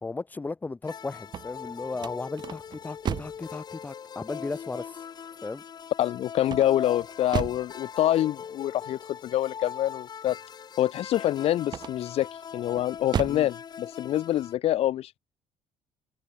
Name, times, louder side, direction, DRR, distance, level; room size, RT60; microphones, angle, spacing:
voice 1, 0.0-5.0 5.4-5.6 13.3-13.5, left 3 dB, 15° left, 2.7 m, -36 dB
sound 1, 0.8-14.5, left 7 dB, 30° left, 6.9 m, -40 dB
sound 2, 1.2-3.5 6.4-7.7 11.6-12.2 12.7-13.5, right 9 dB, 35° right, 0.8 m, -34 dB
voice 2, 6.0-10.4 10.8-12.3 12.5-15.2, left 13 dB, 50° left, 1.3 m, -26 dB
cardioid pair, 170°, 13 cm